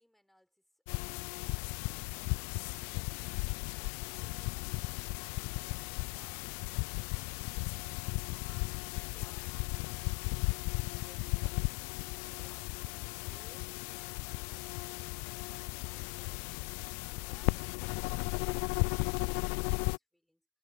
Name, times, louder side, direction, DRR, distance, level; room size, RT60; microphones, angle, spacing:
voice 1, 0.0-1.4 12.1-12.8, equal, 5° left, 5.9 m, -67 dB
sound 1, 0.9-20.0, left 35 dB, 70° left, 0.3 m, -36 dB
hypercardioid pair, 65°, 4 cm